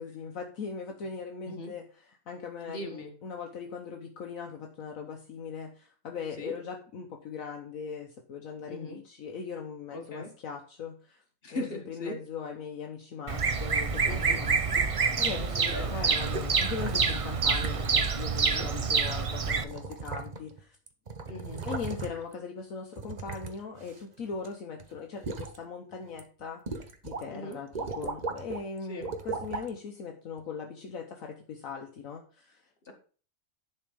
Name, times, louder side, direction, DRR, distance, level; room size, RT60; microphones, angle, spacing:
voice 1, 0.0-11.2 11.5-20.8 21.6-32.7, left 6 dB, 65° left, 3 dB, 1.3 m, -40 dB
voice 2, 2.7-3.1 6.4-6.5 8.7-9.0 9.9-10.3 11.4-12.2 14.0-14.4 15.5-15.9 18.5-18.7 21.3-21.7 27.3-27.6 28.9-29.1 32.9-33.0, left 1 dB, 40° left, 2 dB, 1.8 m, -38 dB
Bird vocalization bird call bird song, 13.3-19.6, right 5 dB, 60° right, 0.3 m, -27 dB
sound 1, 16.2-17.2 17.6-17.9 18.2-18.3 19.2-19.3 19.7-20.6 20.9-22.3 23.0-24.5 24.8-25.6 26.0-26.2 26.7-27.2 27.5-28.6 29.0-29.7 30.4-30.5, right 4 dB, 35° right, 0.9 m, -37 dB
10.5 x 4.4 x 5.1 m, 0.41 s
omnidirectional pair, 1.6 m